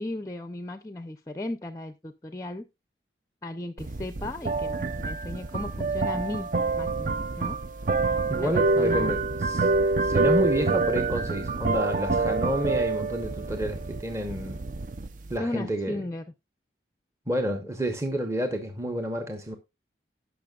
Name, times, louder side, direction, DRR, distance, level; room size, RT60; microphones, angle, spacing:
voice 1, 0.0-2.7 3.4-6.5 6.8-7.6 8.4-9.1 15.4-16.2, left 2 dB, 20° left, 0.5 m, -36 dB
sound 1, 3.8-15.4, right 3 dB, 45° right, 0.5 m, -27 dB
voice 2, 8.3-9.7 10.0-14.6 15.3-16.0 17.3-19.6, equal, 15° right, 0.9 m, -30 dB
17.5 x 5.8 x 2.3 m
head